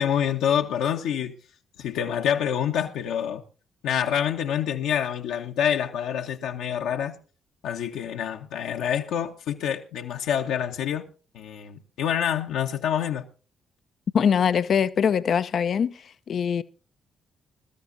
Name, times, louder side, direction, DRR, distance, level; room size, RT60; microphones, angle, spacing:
voice 1, 0.0-1.3 1.8-3.4 3.8-7.1 7.6-11.0 11.3-13.2, left 9 dB, 70° left, 1.0 m, -27 dB
voice 2, 14.1-16.6, left 7 dB, 55° left, 0.6 m, -23 dB
21.5 x 13.0 x 2.6 m
hypercardioid pair, 40°, 0 cm